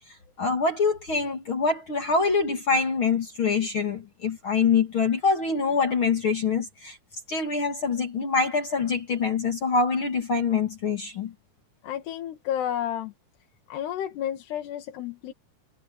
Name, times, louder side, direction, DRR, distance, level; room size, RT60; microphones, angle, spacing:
voice 1, 0.4-7.0 7.3-11.3, left 4 dB, 40° left, 1.9 m, -25 dB
voice 2, 11.8-13.1 13.7-15.3, left 10 dB, 65° left, 3.9 m, -31 dB
omnidirectional pair, 5.3 m